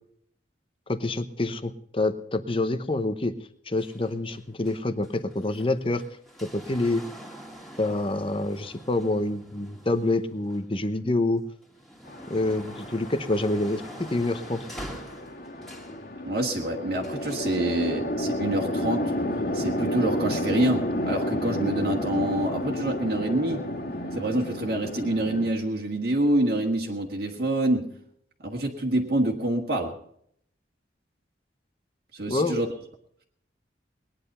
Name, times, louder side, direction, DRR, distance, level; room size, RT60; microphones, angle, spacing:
voice 1, 0.9-3.3 3.7-6.0 6.4-7.0 7.8-11.4 12.3-14.7 32.3-32.6, left 2 dB, 30° left, 10 dB, 0.9 m, -27 dB
sound 1, 3.8-11.0 11.5-16.0 17.0-17.6 18.5-18.6, right 1 dB, ahead, 2.3 m, -45 dB
Chatter / Traffic noise roadway noise / Train, 12.1-25.5, left 1 dB, 55° left, 2.0 m, -31 dB
voice 2, 16.2-19.1 19.5-23.6 24.1-27.9 28.4-29.9 32.1-32.7, right 1 dB, 60° right, 0 dB, 1.8 m, -26 dB
20.0 x 10.0 x 5.5 m, 0.68 s
head